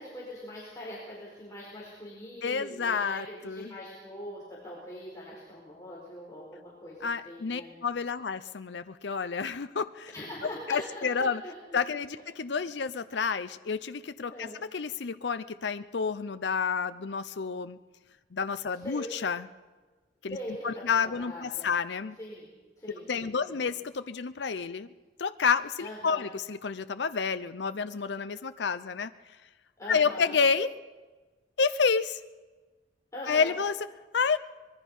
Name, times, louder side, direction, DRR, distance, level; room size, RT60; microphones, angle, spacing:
voice 1, 0.0-7.7 10.1-12.2 14.3-14.6 18.7-19.1 20.3-21.7 22.2-22.5 22.8-23.6 25.8-26.3 29.8-30.4 33.1-33.6, left 1 dB, 20° left, -5 dB, 4.6 m, -42 dB
voice 2, 2.4-3.7 7.0-10.1 10.7-11.4 11.7-17.8 18.3-19.5 20.2-20.4 20.6-22.2 23.1-24.9 25.2-29.1 29.9-30.7 31.6-32.2 33.3-33.7 34.1-34.4, left 5 dB, 70° left, 11 dB, 0.6 m, -29 dB
24.5 x 21.0 x 5.5 m, 1.3 s
head